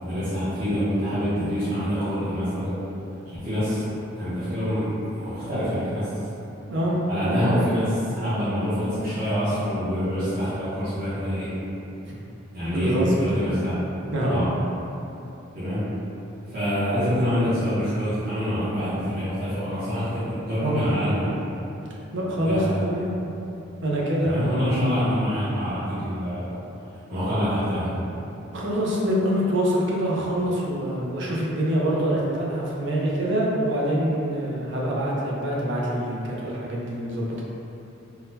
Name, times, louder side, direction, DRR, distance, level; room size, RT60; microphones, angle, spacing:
voice 1, 0.0-2.8 3.3-3.8 4.1-6.1 7.1-11.5 12.5-13.7 14.3-14.5 15.5-15.8 16.5-21.3 22.4-22.8 24.2-26.5 27.1-28.1, equal, 45° right, -16 dB, 0.9 m, -26 dB
voice 2, 12.7-13.2 14.1-14.5 22.1-23.1 23.8-24.9 28.3-37.4, equal, 60° right, -4 dB, 0.6 m, -25 dB
3.8 x 2.1 x 2.7 m, 2.9 s
head